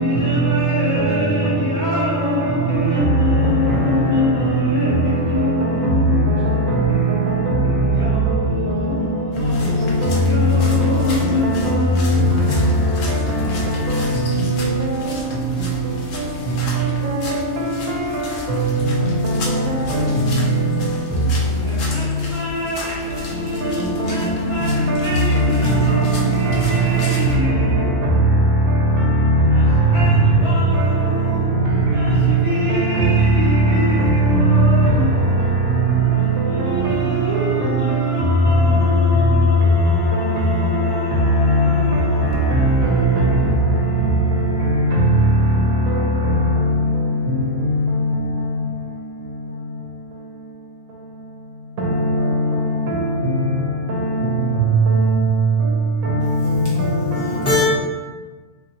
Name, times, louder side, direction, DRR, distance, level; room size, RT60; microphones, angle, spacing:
voice 1, 0.0-6.8 7.9-13.5 21.1-28.7 29.5-35.7 36.2-43.7, left 2 dB, 35° right, 0.6 m, -27 dB
voice 2, 3.4-4.0 4.4-4.9 5.7-5.9 6.7-6.8 9.8-9.9 11.4-11.5 13.1-13.4 14.2-14.3 14.6-14.7 18.6-18.7 19.2-19.4 19.9-20.2 23.6-24.4 24.9-25.0 26.5-27.1 32.7-33.0 40.1-40.4 41.4-41.6 42.6-42.9 43.2-43.3 51.8-53.0 53.9-54.1 54.9-55.1 56.0-56.1 56.8-56.9 57.5-57.6, right 1 dB, 75° right, 1.0 m, -20 dB
sound 1, 9.3-27.4, left 2 dB, 70° left, 0.9 m, -34 dB
voice 3, 56.2-56.6 57.2-57.6, left 3 dB, 45° left, 0.8 m, -22 dB
3.0 x 2.6 x 2.7 m
omnidirectional pair, 1.5 m